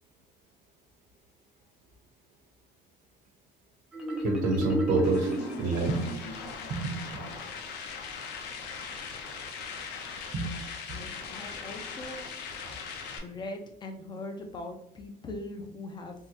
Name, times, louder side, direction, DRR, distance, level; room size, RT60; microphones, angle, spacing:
Marimba xylophone, 3.9-6.7, right 1 dB, 5° right, 0.8 m, -33 dB
voice 1, 4.2-5.3 5.6-6.1 6.7-7.2 10.3-10.5 10.9-11.0, right 2 dB, 70° right, -1 dB, 0.8 m, -28 dB
sound 1, 5.0-13.2, left 5 dB, 90° left, 0.5 m, -40 dB
voice 2, 10.9-12.2 13.2-16.1, left 2 dB, 25° left, 5 dB, 0.5 m, -41 dB
3.5 x 2.0 x 2.9 m, 0.71 s
cardioid pair, 110°, 17 cm